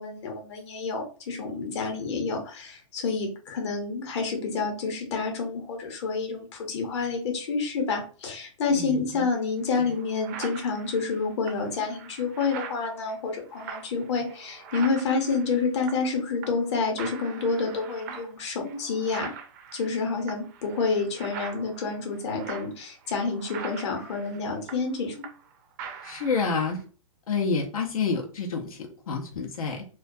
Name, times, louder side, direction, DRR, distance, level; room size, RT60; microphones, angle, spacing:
voice 1, 0.0-19.3 19.7-25.1, left 4 dB, 50° left, 2 dB, 0.8 m, -29 dB
voice 2, 8.7-9.2 9.8-9.9 26.0-26.8 27.3-29.8, left 4 dB, 90° left, 0 dB, 0.6 m, -29 dB
sound 1, 9.3-9.4 9.8-16.2 16.4-16.7 17.0-25.5 25.8-26.8, right 6 dB, 30° right, 0.4 m, -42 dB
2.3 x 2.2 x 2.5 m, 0.39 s
hypercardioid pair, 150°, 18 cm